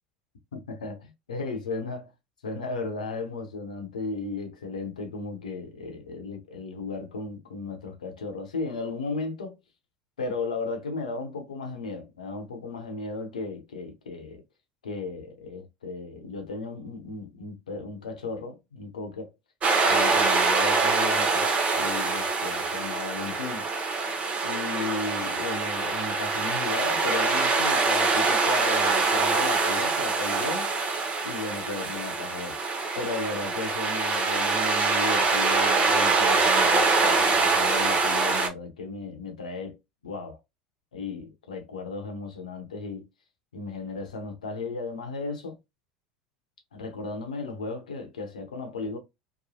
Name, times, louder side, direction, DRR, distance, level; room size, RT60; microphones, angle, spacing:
voice 1, 0.5-2.1 2.4-9.6 10.2-14.4 14.8-19.3 19.9-23.7 24.4-30.7 31.2-32.6 33.0-39.8 40.0-40.4 40.9-43.0 43.5-45.6 46.7-49.0, left 3 dB, 85° left, 0.8 m, -35 dB
sound 1, 19.6-38.5, right 4 dB, 35° right, 0.9 m, -24 dB
3.1 x 2.1 x 2.7 m
hypercardioid pair, 80°, 4 cm